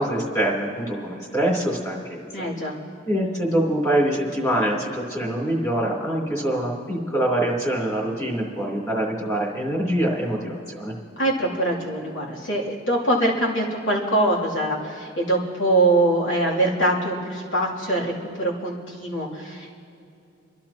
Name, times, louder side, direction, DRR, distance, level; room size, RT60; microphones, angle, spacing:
voice 1, 0.0-2.5 3.0-10.9, right 1 dB, 20° left, -4 dB, 3.2 m, -24 dB
voice 2, 2.3-2.8 11.2-19.7, right 1 dB, 90° left, -4 dB, 2.8 m, -23 dB
29.0 x 12.0 x 2.9 m, 2.6 s
head